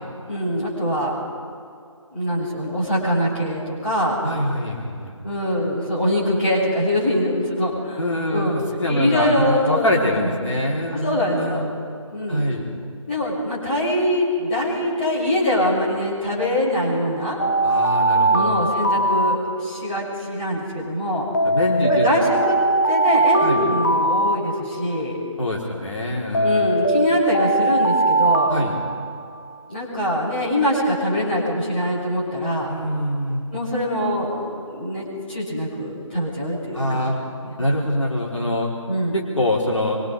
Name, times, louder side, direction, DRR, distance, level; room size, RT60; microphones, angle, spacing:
voice 1, 0.3-1.1 2.1-4.2 5.2-8.0 8.3-10.3 11.0-11.6 12.1-12.5 13.0-17.4 18.3-21.2 21.8-22.6 22.8-25.2 26.4-28.5 29.7-32.7 33.5-37.1 37.4-37.5 38.9-39.2, left 1 dB, 20° left, -7 dB, 6.0 m, -23 dB
voice 2, 4.2-5.2 8.0-11.7 12.3-12.7 17.6-18.6 21.4-22.1 23.4-23.6 25.4-26.7 28.5-28.8 32.7-33.4 36.7-37.2 37.6-38.7 39.1-40.0, left 1 dB, 65° left, -3 dB, 4.2 m, -24 dB
Alarm, 17.4-20.0 21.3-25.0 26.3-29.6, right 2 dB, 35° left, 0.8 m, -21 dB
27.0 x 25.0 x 4.9 m, 2.3 s
figure-of-eight pair, 160°, 17 cm